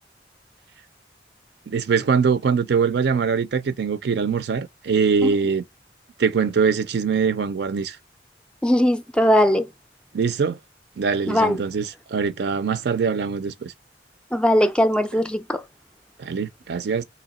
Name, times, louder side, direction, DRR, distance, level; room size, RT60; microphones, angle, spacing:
voice 1, 1.7-5.6 6.2-8.0 10.1-10.6 11.0-13.7 16.2-17.0, right 5 dB, 65° right, 0.4 m, -22 dB
voice 2, 8.6-9.7 11.3-11.6 14.3-15.6, equal, 5° left, 0.3 m, -19 dB
3.0 x 2.9 x 4.1 m
head